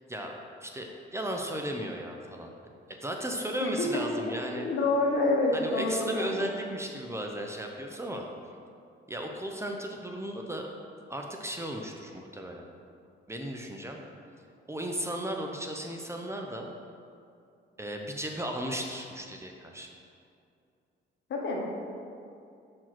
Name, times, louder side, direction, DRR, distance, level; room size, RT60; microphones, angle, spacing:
voice 1, 0.6-2.5 2.9-4.7 5.5-8.3 9.1-10.7 11.1-12.7 13.3-14.0 14.7-16.7 17.8-19.9, right 1 dB, 15° right, 2 dB, 0.7 m, -35 dB
voice 2, 4.6-6.4 21.3-21.6, left 2 dB, 65° left, -1 dB, 1.5 m, -27 dB
6.1 x 4.7 x 5.9 m, 2.5 s
cardioid pair, 90°, 20 cm